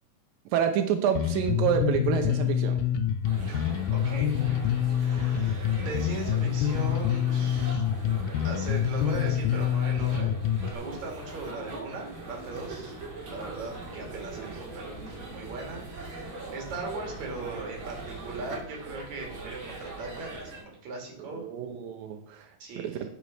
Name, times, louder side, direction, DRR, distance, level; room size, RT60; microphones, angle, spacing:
voice 1, 0.5-2.8 14.3-14.5 21.2-22.5 22.8-23.0, right 9 dB, 90° right, 5 dB, 2.6 m, -28 dB
Bass guitar, 1.2-10.8, left 9 dB, 80° left, 2.2 m, -26 dB
sound 1, 3.2-20.6, right 2 dB, 40° right, 2.8 m, -41 dB
voice 2, 3.4-4.6 5.0-7.8 8.4-12.9 13.3-21.5 22.6-23.0, right 3 dB, 55° right, 1 dB, 3.6 m, -39 dB
9.2 x 6.6 x 5.9 m, 0.66 s
omnidirectional pair, 4.0 m